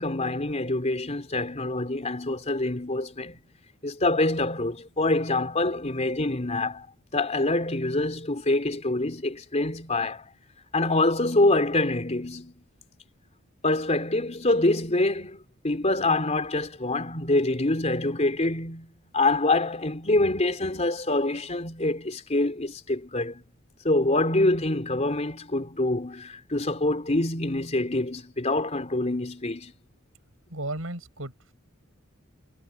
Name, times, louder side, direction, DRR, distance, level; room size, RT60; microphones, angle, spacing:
voice 1, 0.0-3.4 3.8-6.9 7.1-10.3 10.7-12.5 13.6-23.4 23.8-29.7, left 2 dB, 35° left, 3.7 m, -25 dB
voice 2, 30.5-31.5, right 2 dB, 85° right, 6.4 m, -35 dB
head